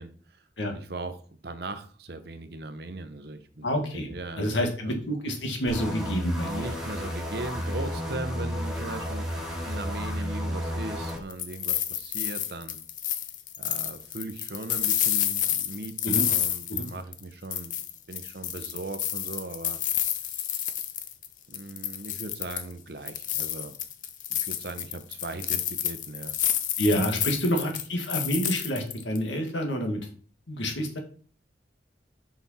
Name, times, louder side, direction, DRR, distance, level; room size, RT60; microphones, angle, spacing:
voice 1, 0.0-3.7 3.9-5.0 6.4-12.8 13.6-17.8 18.1-19.8 20.3-20.7 21.5-23.8 24.3-26.4 26.9-27.3, right 2 dB, 60° right, 10 dB, 0.8 m, -39 dB
voice 2, 3.6-4.1 4.4-6.7 16.0-16.3 16.7-16.9 26.8-30.0 30.5-31.0, equal, 90° left, 3 dB, 1.8 m, -28 dB
sound 1, 5.7-11.2, equal, 5° right, 1.6 m, -32 dB
sound 2, 11.1-17.2 17.5-21.3 21.5-22.7 23.1-29.2, left 11 dB, 45° left, 0.6 m, -29 dB
6.1 x 5.9 x 4.2 m, 0.41 s
head